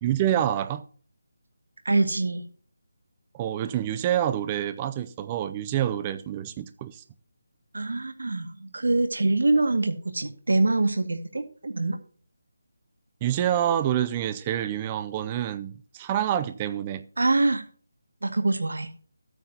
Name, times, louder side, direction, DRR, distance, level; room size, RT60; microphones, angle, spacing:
voice 1, 0.0-0.8 3.3-7.0 13.2-17.0, right 11 dB, 15° right, 0.5 m, -27 dB
voice 2, 1.9-2.5 7.7-12.0 17.2-17.6 18.2-18.9, right 2 dB, 80° right, 2.0 m, -24 dB
13.0 x 9.2 x 2.9 m
figure-of-eight pair, 175°, 0 cm